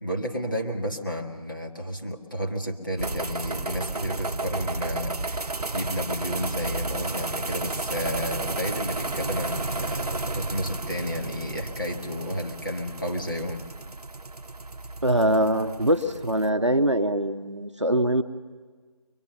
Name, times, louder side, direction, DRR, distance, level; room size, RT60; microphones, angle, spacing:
voice 1, 0.0-13.7, equal, 35° left, 1 dB, 1.4 m, -32 dB
sound 1, 3.0-16.5, right 2 dB, 80° right, 0.7 m, -32 dB
voice 2, 15.0-18.2, right 1 dB, 50° right, 7 dB, 0.8 m, -23 dB
23.0 x 21.0 x 6.9 m, 1.5 s
figure-of-eight pair, 180°, 20 cm